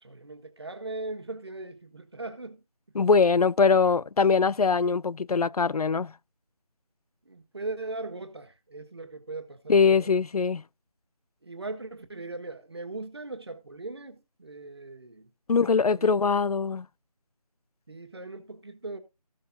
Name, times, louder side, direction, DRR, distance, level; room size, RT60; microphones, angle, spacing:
voice 1, 0.0-2.6 7.2-10.1 11.4-15.3 15.6-16.2 17.9-19.0, right 2 dB, 45° right, 1.6 m, -39 dB
voice 2, 3.0-6.1 9.7-10.6 15.5-16.9, left 5 dB, 75° left, 0.4 m, -22 dB
15.0 x 7.2 x 2.7 m
figure-of-eight pair, 175°, 20 cm